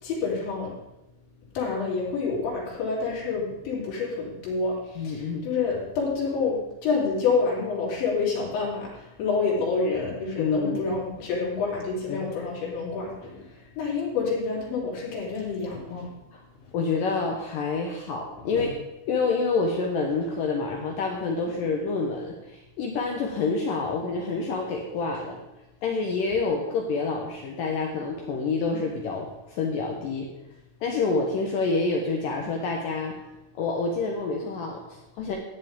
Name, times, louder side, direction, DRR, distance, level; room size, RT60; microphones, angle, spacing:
voice 1, 0.0-0.7 1.6-16.1 18.4-18.7 21.6-21.7, left 4 dB, 65° left, -4 dB, 5.5 m, -28 dB
voice 2, 5.0-5.5 10.4-10.9 12.1-12.3 16.3-16.4 16.7-18.7 19.1-25.4 25.8-30.3 30.8-33.2 33.5-35.4, left 4 dB, 85° left, 1 dB, 1.9 m, -27 dB
14.0 x 9.9 x 3.7 m, 0.92 s
omnidirectional pair, 5.6 m